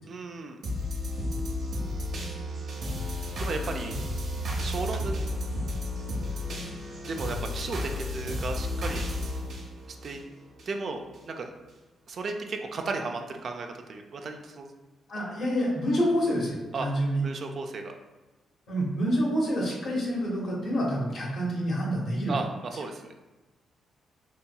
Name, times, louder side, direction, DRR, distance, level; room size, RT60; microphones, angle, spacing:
voice 1, 0.0-0.6 3.4-4.0 4.6-5.4 7.0-9.1 9.9-10.2 10.7-11.5 12.1-14.7 16.7-16.9 17.2-18.0 22.3-23.1, right 3 dB, 55° right, 4 dB, 0.4 m, -35 dB
sound 1, 0.6-10.7 11.1-11.2, left 1 dB, 70° right, 0.8 m, -32 dB
voice 2, 15.1-17.2 18.7-22.3, equal, 65° left, -3 dB, 1.2 m, -27 dB
4.0 x 2.7 x 2.3 m, 1.1 s
cardioid pair, 65°, 0 cm